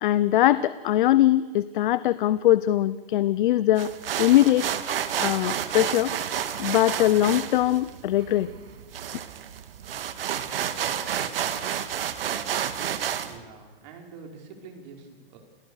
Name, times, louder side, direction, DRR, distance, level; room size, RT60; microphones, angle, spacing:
voice 1, 0.0-3.9 4.2-4.8 5.2-6.1 6.6-8.5, left 13 dB, 60° left, 16 dB, 0.8 m, -21 dB
sound 1, 3.8-13.3, right 9 dB, 75° right, 2.0 m, -30 dB
voice 2, 13.2-15.4, right 4 dB, 50° right, 3 dB, 5.2 m, -45 dB
29.5 x 18.5 x 6.6 m, 1.4 s
hypercardioid pair, 145°, 29 cm